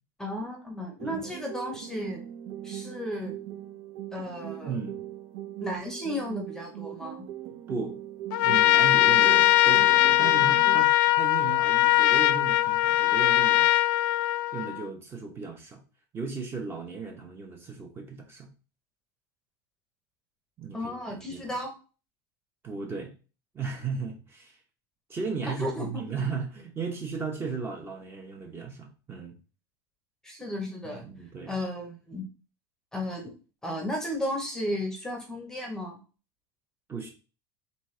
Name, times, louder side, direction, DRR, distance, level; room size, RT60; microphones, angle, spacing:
voice 1, 0.2-2.2 2.6-3.4 4.1-4.8 5.6-7.3 20.7-21.7 25.5-26.0 30.2-31.1 31.5-32.2 32.9-33.3 33.6-36.0, left 1 dB, 5° left, 2 dB, 0.8 m, -34 dB
sound 1, 1.0-11.0, right 13 dB, 65° right, 0.6 m, -40 dB
voice 2, 4.7-5.0 7.7-8.0 8.4-13.7 14.5-15.8 16.1-18.5 20.6-21.4 22.6-23.1 23.5-24.6 25.1-29.3 30.8-31.6 36.9-37.1, right 5 dB, 20° right, 3 dB, 0.9 m, -35 dB
Trumpet, 8.3-14.8, left 15 dB, 75° left, 0.4 m, -21 dB
4.2 x 3.6 x 3.2 m, 0.35 s
supercardioid pair, 155°, 11 cm